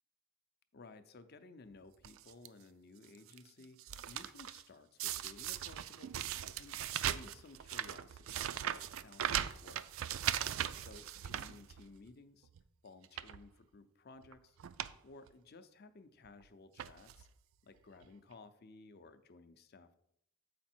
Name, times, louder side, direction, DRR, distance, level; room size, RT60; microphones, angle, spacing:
voice 1, 0.7-9.8 10.8-12.5 12.8-14.6 15.0-17.3 17.6-19.9, left 3 dB, 50° left, 10 dB, 0.6 m, -57 dB
sound 1, 2.0-2.5 3.0-3.4 3.6-4.6 5.0-12.1 12.5-12.6 13.0-13.4 14.2-14.3 14.6-15.0 15.3-15.4 16.3-16.4 16.8-17.3 18.0-18.1 18.3-18.4, right 10 dB, 70° right, 0.4 m, -39 dB
8.1 x 5.1 x 4.4 m, 0.73 s
head